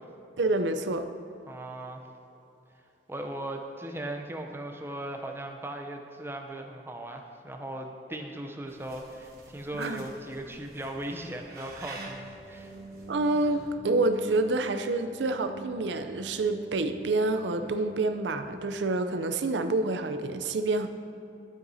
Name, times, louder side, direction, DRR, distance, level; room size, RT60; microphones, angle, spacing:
voice 1, 0.4-1.1 9.7-10.0 13.1-20.9, right 2 dB, 85° right, 8 dB, 0.5 m, -28 dB
voice 2, 1.5-2.0 3.1-12.7, right 1 dB, 15° right, 3 dB, 0.6 m, -38 dB
sound 1, 8.7-13.7, right 3 dB, 60° right, 1.1 m, -49 dB
sound 2, 11.9-19.0, right 2 dB, 35° right, 0.9 m, -46 dB
12.5 x 7.5 x 2.7 m, 2.6 s
head